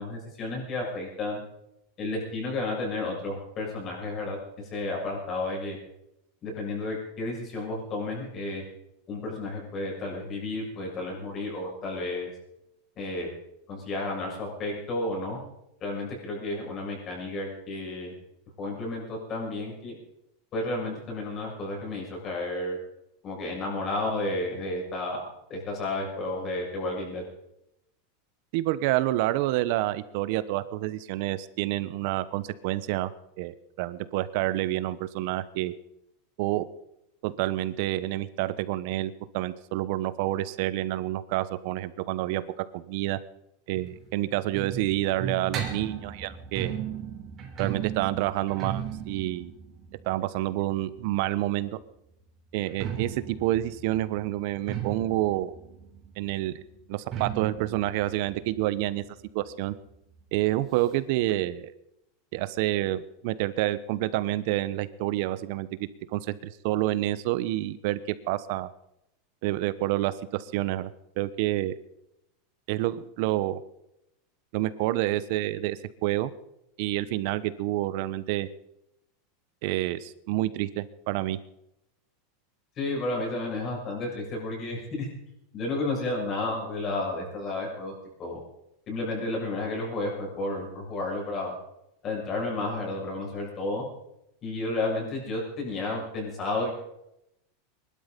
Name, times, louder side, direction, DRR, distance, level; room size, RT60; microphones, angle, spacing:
voice 1, 0.0-1.4 2.0-5.8 6.4-8.6 9.1-12.3 13.0-13.3 13.7-15.4 15.8-18.1 18.6-20.0 20.5-22.8 23.2-27.2 82.8-85.1 85.5-87.9 88.2-88.4 88.9-91.5 92.0-93.8 94.4-96.7, left 2 dB, 30° left, -1 dB, 7.1 m, -32 dB
voice 2, 28.5-33.1 33.4-35.7 36.4-36.7 37.2-42.4 42.7-43.2 43.7-46.8 47.6-49.5 50.0-51.8 52.5-55.5 56.2-56.6 56.9-59.0 59.3-59.7 60.3-61.7 62.3-68.7 69.4-70.9 71.2-71.7 72.7-73.6 74.5-76.3 76.8-78.5 79.6-81.4, right 15 dB, 60° right, 15 dB, 1.0 m, -28 dB
sound 1, 43.7-51.4 52.5-59.9 60.2-60.3 60.5-60.6 61.3-61.4, right 8 dB, 30° right, 3.1 m, -37 dB
21.5 x 12.0 x 5.3 m, 0.83 s
supercardioid pair, 150°, 0 cm